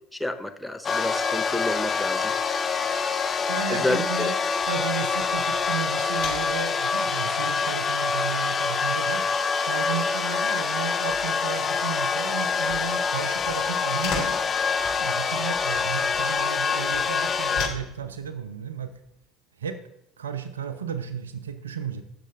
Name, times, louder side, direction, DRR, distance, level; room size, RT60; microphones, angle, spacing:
voice 1, 0.1-2.3 3.7-4.3, left 1 dB, 5° left, 7 dB, 0.9 m, -29 dB
sound 1, 0.8-17.7, left 5 dB, 30° left, 0.9 m, -26 dB
sound 2, 1.2-19.2, left 5 dB, 60° left, 2.8 m, -43 dB
voice 2, 3.5-4.4 4.7-9.3 9.7-14.3 14.9-18.9 19.6-19.8 20.2-22.0, right 7 dB, 80° right, 11 dB, 0.8 m, -34 dB
16.5 x 6.8 x 2.6 m, 0.84 s
figure-of-eight pair, 65°, 0 cm